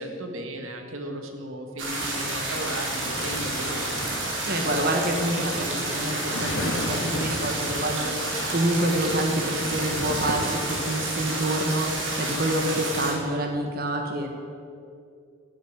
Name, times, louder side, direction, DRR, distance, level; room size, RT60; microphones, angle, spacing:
voice 1, 0.0-4.6 5.4-6.0 7.5-8.2, right 1 dB, 85° right, 4 dB, 1.9 m, -37 dB
sound 1, 1.8-13.1, right 2 dB, 65° right, 4.1 m, -30 dB
sound 2, 3.0-7.7 8.7-11.2, left 2 dB, 70° left, 1.9 m, -35 dB
voice 2, 4.4-8.1 8.5-14.3, right 1 dB, 50° right, 3 dB, 1.6 m, -27 dB
13.0 x 9.5 x 9.6 m, 2.4 s
head